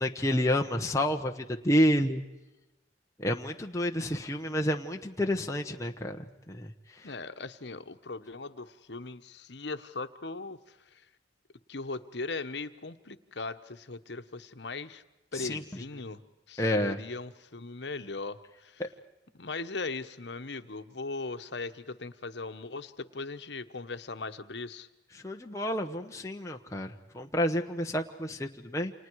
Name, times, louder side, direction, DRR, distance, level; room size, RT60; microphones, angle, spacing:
voice 1, 0.0-2.2 3.2-6.7 15.4-15.8 16.6-17.0 18.8-18.9 25.2-28.9, equal, 15° left, 2 dB, 1.1 m, -29 dB
voice 2, 7.0-11.0 11.7-15.0 15.3-16.2 16.5-18.8 19.3-24.9, left 3 dB, 70° left, 10 dB, 1.2 m, -39 dB
29.5 x 27.5 x 4.8 m, 0.99 s
head